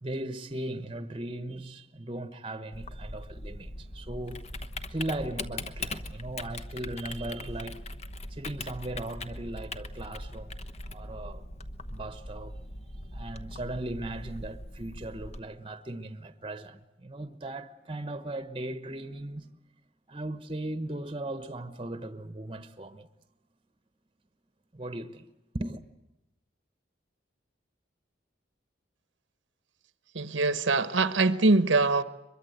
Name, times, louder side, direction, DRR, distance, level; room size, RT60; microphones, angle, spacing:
voice 1, 0.0-4.4 4.9-7.8 8.3-11.4 11.9-12.6 13.1-19.5 20.1-23.1 24.7-25.2 25.5-25.8, right 1 dB, 25° right, 1.1 m, -38 dB
Typing, 2.7-15.4, left 2 dB, 35° left, 1.1 m, -40 dB
voice 2, 30.1-32.0, right 3 dB, 80° right, 1.0 m, -23 dB
23.5 x 22.5 x 8.1 m
head